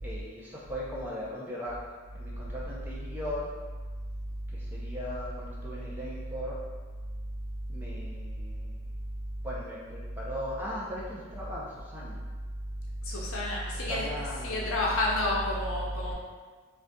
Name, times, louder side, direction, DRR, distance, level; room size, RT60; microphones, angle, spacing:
voice 1, 0.0-1.8 2.1-3.5 4.5-6.6 7.7-8.8 9.4-12.2 13.7-14.7, equal, 10° right, -7 dB, 0.5 m, -38 dB
voice 2, 13.0-16.1, left 1 dB, 80° left, -4 dB, 0.6 m, -30 dB
3.9 x 2.4 x 2.2 m, 1.4 s
head